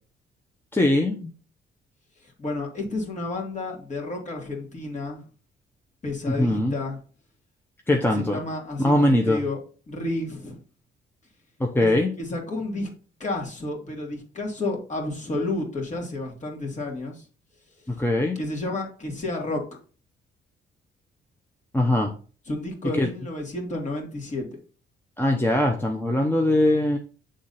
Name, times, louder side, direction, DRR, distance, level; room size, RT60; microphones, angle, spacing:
voice 1, 0.7-1.3 6.4-6.8 7.9-8.4 8.8-9.4 11.6-12.1 17.9-18.4 21.7-22.1 22.9-23.1 25.2-27.0, left 1 dB, 10° left, 2 dB, 0.8 m, -21 dB
voice 2, 2.2-5.2 6.0-7.0 8.1-9.6 9.9-10.6 11.8-11.9 12.2-12.9 13.2-17.2 18.4-19.6 22.5-24.6, left 2 dB, 35° left, 0 dB, 2.3 m, -31 dB
7.3 x 3.8 x 4.1 m, 0.39 s
cardioid pair, 90°, 20 cm